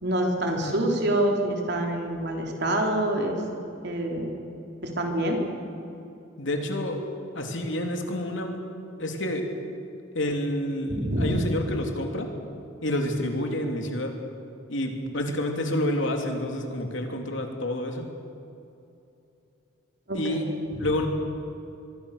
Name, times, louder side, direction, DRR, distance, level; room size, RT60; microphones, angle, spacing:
voice 1, 0.0-3.4 3.8-4.3 4.8-5.4 10.9-11.3 20.1-20.4, right 1 dB, 55° right, 1 dB, 3.8 m, -26 dB
voice 2, 6.4-7.1 7.3-8.6 9.0-9.5 10.1-12.3 12.8-14.2 14.7-18.1 20.1-20.5 20.8-21.1, left 1 dB, 70° left, 3 dB, 3.2 m, -29 dB
24.5 x 23.5 x 6.8 m, 2.7 s
head